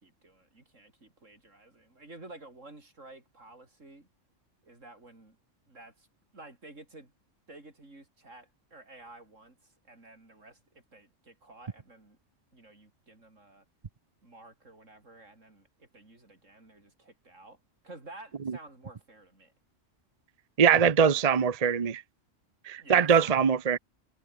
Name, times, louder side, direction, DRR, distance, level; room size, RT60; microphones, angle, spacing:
voice 1, 0.0-4.1 4.6-5.4 5.7-6.1 6.3-7.1 7.5-12.2 12.5-13.6 14.2-17.6 17.8-19.5 22.8-23.4, right 2 dB, 75° right, 5.5 m, -52 dB
voice 2, 20.6-22.0 22.7-23.8, right 7 dB, 35° right, 0.8 m, -22 dB
omnidirectional pair, 1.3 m